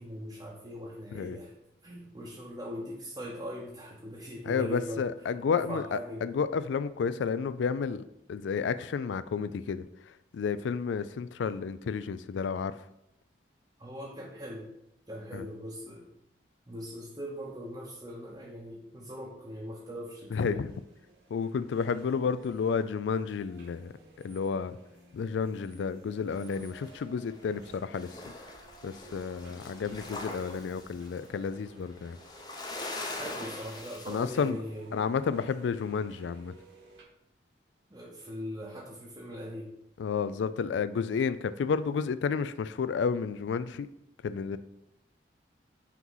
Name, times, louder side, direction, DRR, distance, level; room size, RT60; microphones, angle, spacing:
voice 1, 0.0-1.5 1.8-5.1 5.5-6.3 13.8-14.7 15.1-16.1 16.7-20.6 33.2-35.1 37.9-39.8, equal, 20° right, -4 dB, 0.7 m, -41 dB
voice 2, 4.5-8.0 8.3-12.8 15.3-15.5 20.3-20.7 21.3-23.9 24.2-24.8 25.1-28.2 28.8-32.2 34.1-34.6 34.9-36.6 40.0-43.9 44.2-44.6, left 6 dB, 75° left, 14 dB, 0.3 m, -31 dB
sound 1, 20.4-37.0, right 3 dB, 70° right, 1.3 m, -57 dB
sound 2, 26.3-27.7 28.0-34.5, left 2 dB, 20° left, 0.6 m, -42 dB
5.8 x 3.1 x 5.4 m, 0.82 s
head